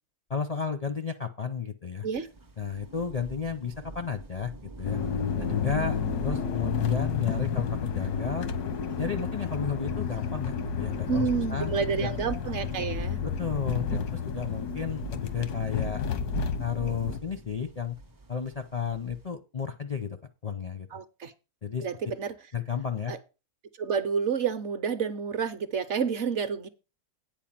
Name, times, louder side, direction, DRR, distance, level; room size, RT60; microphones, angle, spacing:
voice 1, 0.3-2.1 2.6-4.5 4.8-5.0 5.4-7.7 7.9-8.5 9.0-11.7 12.0-12.1 13.2-16.0 16.6-18.0 18.3-20.2 20.4-20.9 21.6-21.9 22.5-23.1, left 6 dB, 45° left, 0.5 m, -33 dB
sound 1, 2.1-19.3, right 2 dB, 25° right, 0.4 m, -44 dB
sound 2, 4.8-17.2, left 6 dB, 90° left, 1.4 m, -31 dB
voice 2, 11.1-13.2 20.9-21.3 21.8-22.3 23.1-23.2 23.8-26.7, right 6 dB, 55° right, 0.9 m, -29 dB
9.1 x 4.7 x 7.4 m
omnidirectional pair, 1.6 m